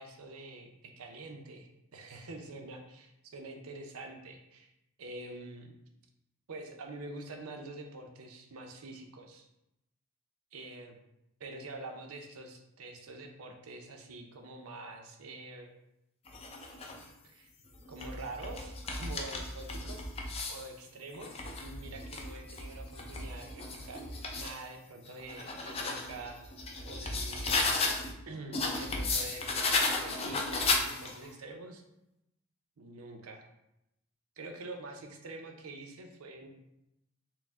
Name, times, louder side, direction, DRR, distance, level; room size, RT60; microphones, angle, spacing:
voice 1, 0.0-4.7 5.0-5.8 6.5-9.5 10.5-11.0 11.4-15.7 16.8-16.9 17.2-17.5 17.9-20.1 20.5-24.0 24.4-26.4 26.9-27.8 28.3-31.8 32.8-33.4 34.4-36.5, right 2 dB, 90° right, 4 dB, 0.6 m, -46 dB
sound 1, 16.3-17.0 17.7-20.7 21.1-24.6 25.1-28.1 28.5-31.3, left 3 dB, 30° left, 0.4 m, -34 dB
4.5 x 2.1 x 3.5 m, 0.86 s
head